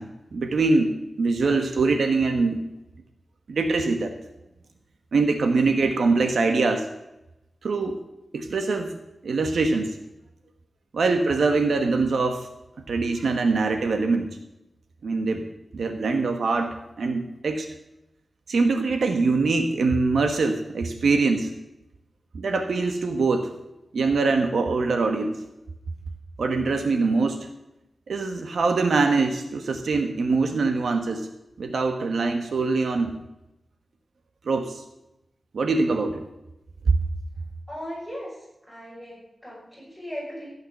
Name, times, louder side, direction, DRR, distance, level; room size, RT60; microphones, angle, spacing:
voice 1, 0.0-2.6 3.5-4.1 5.1-6.9 7.6-8.0 8.3-8.9 9.2-10.0 10.9-12.5 12.9-14.4 15.0-15.5 15.7-17.7 18.5-21.5 22.3-23.5 23.9-25.4 26.4-27.5 28.1-31.3 31.6-33.1 34.4-34.8 35.5-36.3, right 3 dB, 80° right, 6 dB, 1.2 m, -23 dB
voice 2, 37.7-40.5, equal, 10° right, -5 dB, 6.3 m, -38 dB
15.0 x 8.9 x 6.7 m, 0.89 s
wide cardioid pair, 150°, 0 cm